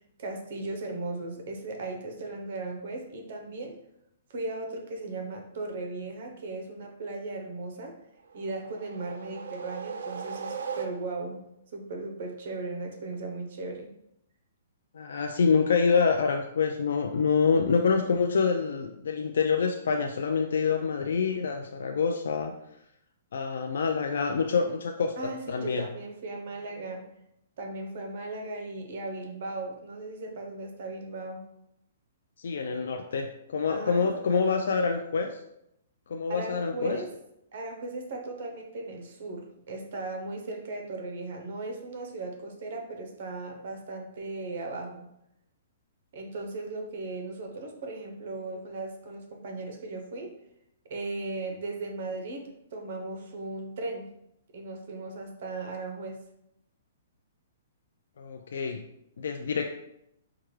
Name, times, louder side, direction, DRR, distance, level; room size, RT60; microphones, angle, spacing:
voice 1, 0.2-3.8 4.3-8.0 8.3-11.4 11.7-13.9 25.2-27.0 27.6-31.5 33.7-34.6 36.3-37.1 37.5-45.1 46.1-50.3 50.9-54.1 54.5-56.2, right 2 dB, 55° right, 3 dB, 0.8 m, -37 dB
sound 1, 8.3-11.4, right 6 dB, 75° right, 0.4 m, -38 dB
voice 2, 14.9-22.5 23.3-25.8 32.4-35.4 36.1-37.0 58.2-58.8 59.2-59.7, left 5 dB, 75° left, 3 dB, 0.3 m, -26 dB
4.7 x 2.2 x 3.1 m, 0.80 s
hypercardioid pair, 160°, 0 cm